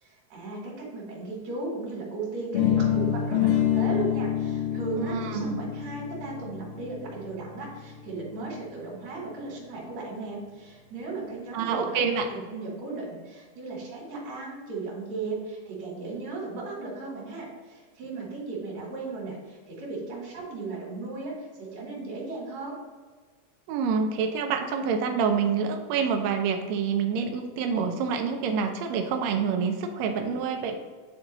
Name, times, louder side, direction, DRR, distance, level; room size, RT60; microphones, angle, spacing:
voice 1, 0.0-22.8, right 3 dB, 60° right, -5 dB, 2.6 m, -36 dB
sound 1, 2.5-8.5, left 10 dB, 70° left, 1.1 m, -27 dB
voice 2, 5.0-5.6 11.5-12.3 23.7-30.7, right 6 dB, 80° right, 5 dB, 1.6 m, -27 dB
9.8 x 3.9 x 3.0 m, 1.5 s
omnidirectional pair, 3.7 m